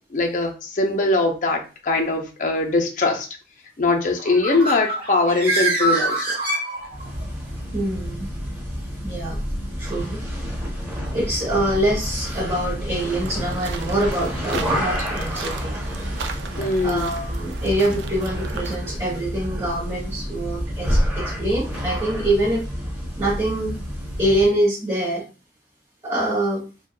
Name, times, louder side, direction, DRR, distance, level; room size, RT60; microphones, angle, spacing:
voice 1, 0.1-3.3 3.8-6.4 14.5-14.7 16.6-17.1, left 3 dB, 45° left, 3 dB, 0.5 m, -22 dB
Bird, 4.2-7.2, right 2 dB, 55° right, 0.9 m, -24 dB
sound 1, 6.8-24.6, equal, 10° right, 0.9 m, -29 dB
voice 2, 7.7-8.3 9.0-9.4 9.8-10.2 11.1-15.8 16.8-22.7 23.2-23.8 24.2-25.2 26.0-26.6, right 1 dB, 35° right, -4 dB, 1.1 m, -24 dB
sound 2, 13.0-18.8, right 6 dB, 75° right, 0.4 m, -37 dB
2.7 x 2.3 x 2.2 m, 0.32 s
head